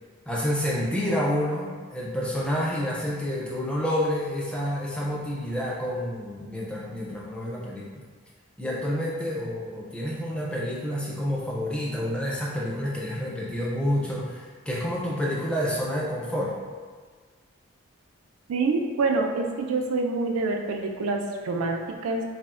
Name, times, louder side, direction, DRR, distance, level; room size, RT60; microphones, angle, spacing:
voice 1, 0.3-8.0 8.6-16.5, equal, 5° left, -5 dB, 0.4 m, -29 dB
voice 2, 18.5-22.2, right 3 dB, 90° right, 3 dB, 0.4 m, -26 dB
4.1 x 2.0 x 2.4 m, 1.5 s
head